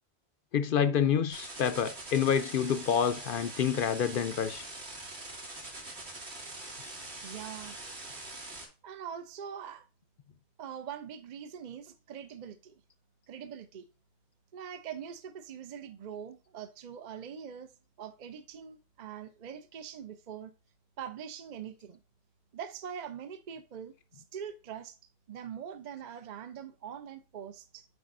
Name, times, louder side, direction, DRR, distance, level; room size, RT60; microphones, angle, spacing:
voice 1, 0.5-4.6, left 8 dB, 60° left, 0.7 m, -28 dB
sound 1, 1.3-8.7, right 2 dB, 90° right, 2.4 m, -43 dB
voice 2, 7.2-7.8 8.8-9.9 10.6-12.7 13.3-13.8 14.5-17.7 18.0-20.5 21.0-22.0 22.5-25.0 25.3-27.9, right 8 dB, 50° right, 0.7 m, -43 dB
8.1 x 5.2 x 2.5 m
omnidirectional pair, 1.1 m